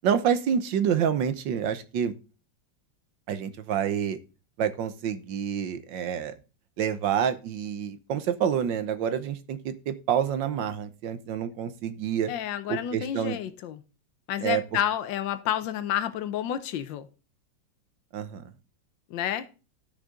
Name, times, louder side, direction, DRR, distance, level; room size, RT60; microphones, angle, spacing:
voice 1, 0.0-2.1 3.3-4.2 4.6-6.3 6.8-12.3 12.7-13.4 14.4-14.6 18.1-18.4, right 8 dB, 75° right, 1.5 m, -28 dB
voice 2, 12.3-13.8 14.3-17.1 19.1-19.5, left 10 dB, 80° left, 1.5 m, -30 dB
12.0 x 6.5 x 3.6 m
omnidirectional pair, 2.1 m